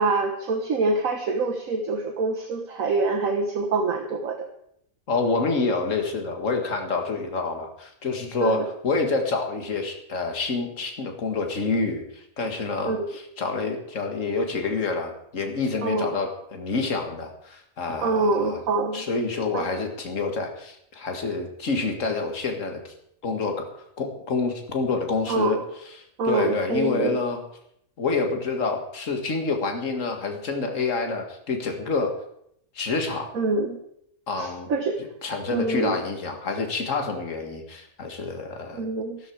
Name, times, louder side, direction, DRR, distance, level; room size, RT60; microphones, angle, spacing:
voice 1, 0.0-4.5 8.4-8.6 12.8-13.0 15.8-16.1 18.0-19.1 19.5-19.7 25.3-25.6 26.2-27.2 33.3-33.8 34.3-35.0 35.5-36.0 38.7-39.2, right 3 dB, 65° right, 3 dB, 1.6 m, -25 dB
voice 2, 5.1-18.6 18.9-22.9 23.2-25.6 26.3-27.4 28.0-32.1 32.8-33.3 34.3-34.7 35.2-38.9, left 3 dB, 60° left, 4 dB, 2.2 m, -27 dB
13.5 x 13.0 x 4.7 m, 0.73 s
omnidirectional pair, 1.6 m